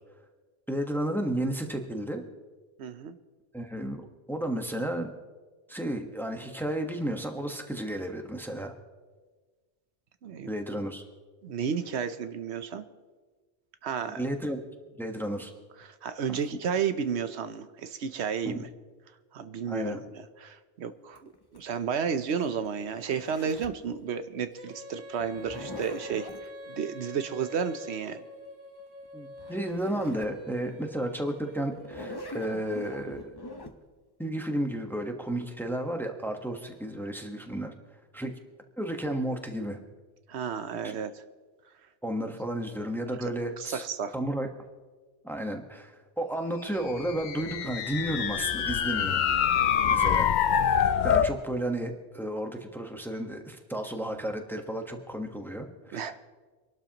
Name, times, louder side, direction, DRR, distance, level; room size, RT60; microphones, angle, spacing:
voice 1, 0.7-2.2 3.5-5.1 5.7-8.7 10.5-11.0 14.2-14.6 15.0-15.5 16.3-16.4 18.4-18.6 19.7-20.0 29.1-33.3 34.2-37.7 38.1-38.3 38.8-39.8 40.8-40.9 42.0-43.8 44.1-44.5 45.2-49.2 49.5-50.3 51.0-56.1, right 1 dB, ahead, 4 dB, 1.1 m, -33 dB
voice 2, 2.8-3.2 10.2-10.5 11.4-12.9 13.8-14.2 15.8-18.7 19.3-20.0 20.4-26.3 26.7-28.2 40.3-41.2 43.6-44.1 49.8-49.9 55.9-56.3, right 7 dB, 80° right, 10 dB, 1.0 m, -32 dB
Zipper (clothing), 21.2-23.9 25.2-26.5 29.1-29.2 29.4-30.4 30.9-31.0 31.7-33.7, left 2 dB, 25° left, 0.8 m, -43 dB
Female singing, 24.5-33.3, equal, 50° right, 6.4 m, -45 dB
sound 1, 47.0-51.4, left 8 dB, 55° left, 0.6 m, -25 dB
26.0 x 12.0 x 3.0 m, 1.3 s
omnidirectional pair, 1.1 m